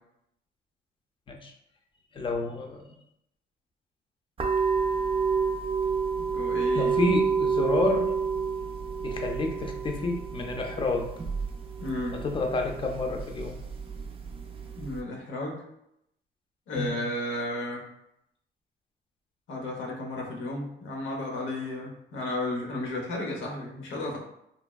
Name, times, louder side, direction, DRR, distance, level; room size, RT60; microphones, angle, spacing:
voice 1, 2.1-2.8 6.7-8.1 9.0-11.1 12.1-13.6 16.8-17.0, left 3 dB, 25° left, 3 dB, 0.5 m, -29 dB
sound 1, 4.4-15.0, right 5 dB, 30° right, 0.4 m, -29 dB
voice 2, 6.2-6.9 11.8-12.2 14.8-15.6 16.7-17.9 19.5-24.2, left 2 dB, 85° left, -1 dB, 0.9 m, -33 dB
3.4 x 2.2 x 2.2 m, 0.78 s
cardioid pair, 90°, 20 cm